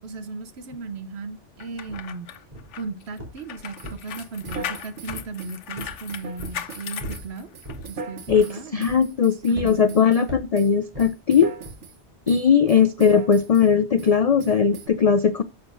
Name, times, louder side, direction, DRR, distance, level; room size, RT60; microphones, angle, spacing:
voice 1, 0.0-2.3 2.8-7.5 7.9-8.8 9.5-10.1, right 4 dB, 65° right, 1.1 m, -36 dB
sound 1, 1.6-7.9 8.3-8.5, left 9 dB, 85° left, 1.0 m, -38 dB
sound 2, 1.9-2.0 2.5-2.8 3.2-3.5 3.8-4.7 5.1-5.4 5.8-6.0 6.4-6.6 7.0-7.3 7.6-7.9 8.3-8.5 8.9-9.2 9.6-9.8 10.3-10.5 10.9-11.1 11.6-11.8, right 1 dB, 35° right, 3.5 m, -37 dB
sound 3, 3.8-10.3 10.5-12.0 12.3-13.7 14.0-14.1 14.4-14.9, right 4 dB, 85° right, 1.3 m, -40 dB
voice 2, 8.3-11.5 12.3-15.4, left 6 dB, 60° left, 0.4 m, -19 dB
11.0 x 7.3 x 2.6 m
omnidirectional pair, 1.2 m